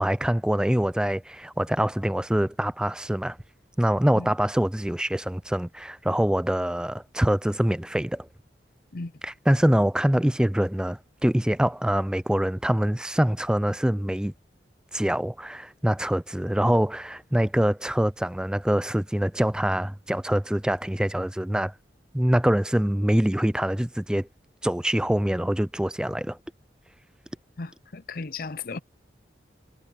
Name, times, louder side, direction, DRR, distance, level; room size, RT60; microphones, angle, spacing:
voice 1, 0.0-3.4 3.8-8.3 9.2-14.3 14.9-21.7 22.1-24.3 24.6-26.4, equal, 5° right, 0.4 m, -24 dB
voice 2, 27.6-28.8, left 4 dB, 50° left, 0.6 m, -35 dB
head